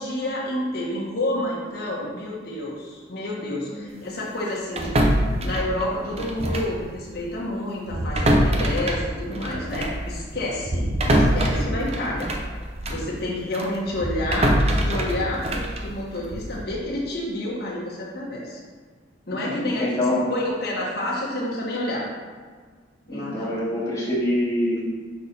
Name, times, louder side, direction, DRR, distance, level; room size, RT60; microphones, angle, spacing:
voice 1, 0.0-5.0 5.4-12.3 12.9-18.6 19.3-22.1 23.1-23.5, left 1 dB, 60° left, -4 dB, 1.4 m, -29 dB
sound 1, 4.8-6.8 7.1-7.3 7.8-13.1 13.5-16.6, right 1 dB, 35° right, 0.7 m, -24 dB
voice 2, 19.8-20.2 23.1-24.8, left 1 dB, 15° left, -7 dB, 1.7 m, -25 dB
6.0 x 5.9 x 4.0 m, 1.5 s
head